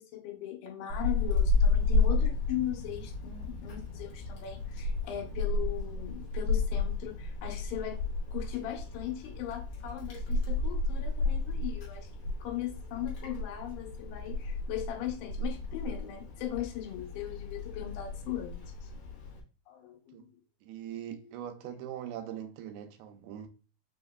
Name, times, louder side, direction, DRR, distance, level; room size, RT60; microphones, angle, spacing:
voice 1, 0.0-8.0 8.3-12.1 12.4-18.9 19.7-20.3 21.1-21.3, left 12 dB, 85° left, 2.8 m, -39 dB
Wind, 0.9-19.4, left 3 dB, 65° left, 2.0 m, -32 dB
voice 2, 20.6-23.5, right 10 dB, 85° right, 2.5 m, -41 dB
6.2 x 2.9 x 2.2 m
omnidirectional pair, 4.4 m